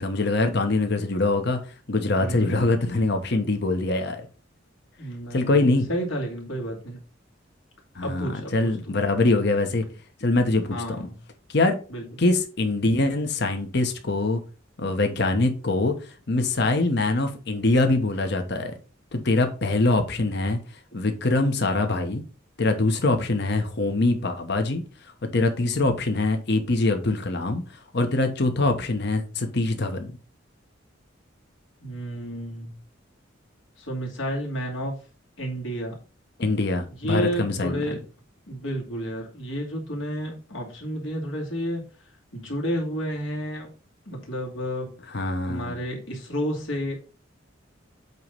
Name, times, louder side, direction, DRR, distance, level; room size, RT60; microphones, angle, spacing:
voice 1, 0.0-1.6 1.9-4.3 5.3-5.9 7.9-9.8 10.2-11.1 11.5-11.7 12.2-14.4 14.8-15.9 16.3-18.7 19.1-20.6 20.9-22.2 22.6-30.1 36.4-38.0 45.1-45.8, left 2 dB, 60° left, 1.1 m, -23 dB
voice 2, 2.2-3.1 5.0-7.0 8.0-8.8 10.7-11.2 11.9-12.1 31.8-32.8 33.8-35.0 35.4-36.0 37.0-38.0 38.5-41.8 42.3-43.7 44.1-45.0 45.5-46.9, equal, 80° left, 2.6 m, -31 dB
8.2 x 3.1 x 5.2 m
head